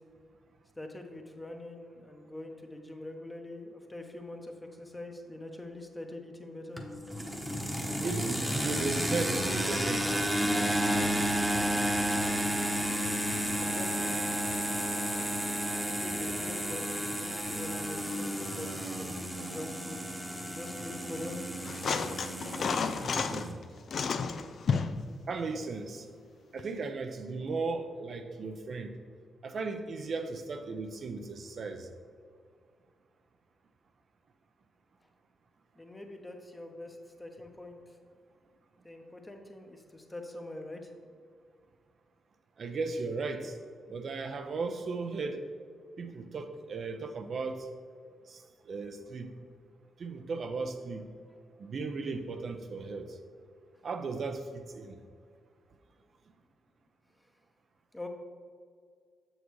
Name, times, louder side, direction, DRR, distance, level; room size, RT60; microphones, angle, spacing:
voice 1, 0.8-4.5 4.8-6.8 13.6-14.1 15.9-20.0 20.4-21.4 26.0-26.1 35.8-37.8 38.8-40.8 57.9-58.1, left 1 dB, 20° left, 3 dB, 1.0 m, -44 dB
sound 1, 6.8-23.5, equal, 10° right, 1.0 m, -32 dB
voice 2, 8.0-10.6 11.0-11.3 23.3-23.6 25.3-26.0 26.5-29.0 29.4-31.9 42.6-43.5 43.9-45.4 46.0-47.7 48.3-49.3 50.0-51.0 51.6-53.2 53.8-55.0, right 4 dB, 55° right, 6 dB, 0.6 m, -36 dB
sound 2, 21.6-23.5 23.9-25.0 26.6-26.7, left 5 dB, 60° left, 0.4 m, -31 dB
6.8 x 6.4 x 3.2 m, 2.1 s
supercardioid pair, 50°, 0 cm